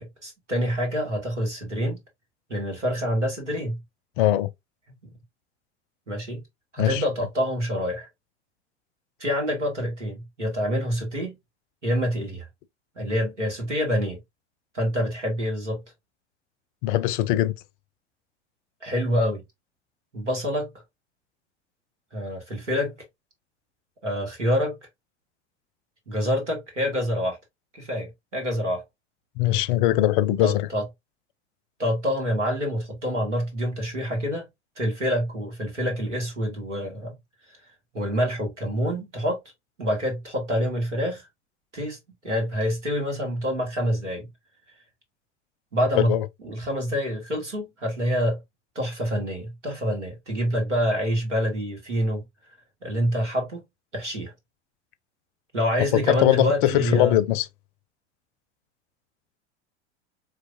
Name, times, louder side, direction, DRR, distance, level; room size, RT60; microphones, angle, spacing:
voice 1, 0.0-2.0 2.5-3.8 6.1-6.4 6.7-8.1 9.2-11.4 11.8-12.5 13.0-14.2 14.7-15.8 18.8-19.4 20.1-20.8 22.1-22.9 24.0-24.8 26.1-27.4 27.7-28.8 30.4-30.8 31.8-34.5 34.8-37.2 37.5-37.6 37.9-39.4 39.8-41.2 41.7-44.3 45.7-46.1 46.4-48.4 48.8-52.2 52.8-53.6 53.9-54.3 55.5-57.2, equal, 85° right, 2.0 m, -26 dB
voice 2, 4.2-4.5 6.8-7.0 16.8-17.5 29.4-30.7 46.0-46.3 56.1-57.5, left 14 dB, 45° left, 0.5 m, -21 dB
4.6 x 3.2 x 2.6 m
figure-of-eight pair, 85°, 35 cm